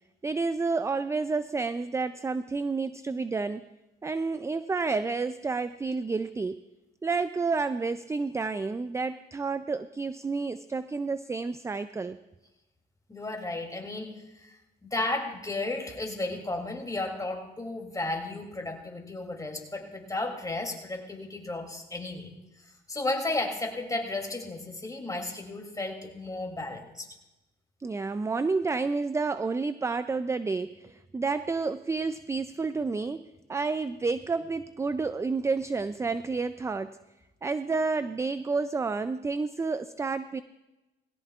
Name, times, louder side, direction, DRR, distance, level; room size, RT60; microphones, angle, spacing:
voice 1, 0.2-3.6 4.0-6.6 7.0-12.2 27.8-33.2 33.5-37.0 37.4-40.4, right 4 dB, 15° right, 13 dB, 0.3 m, -30 dB
voice 2, 13.1-22.3 22.9-27.1, left 2 dB, 15° left, 2 dB, 2.8 m, -34 dB
18.5 x 16.5 x 2.4 m, 1.0 s
cardioid pair, 90°, 20 cm